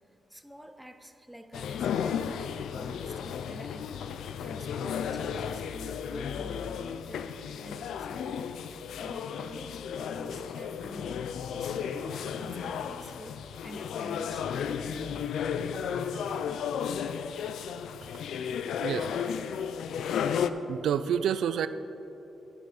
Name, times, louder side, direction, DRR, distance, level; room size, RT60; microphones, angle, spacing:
voice 1, 0.3-2.3 2.7-11.3 11.5-15.2, equal, 5° right, 9 dB, 0.6 m, -48 dB
sound 1, 1.5-20.5, left 7 dB, 85° left, 0.4 m, -34 dB
voice 2, 18.8-19.1 20.7-21.7, right 9 dB, 85° right, 13 dB, 0.3 m, -28 dB
10.5 x 8.0 x 4.9 m, 3.0 s
cardioid pair, 100°, 0 cm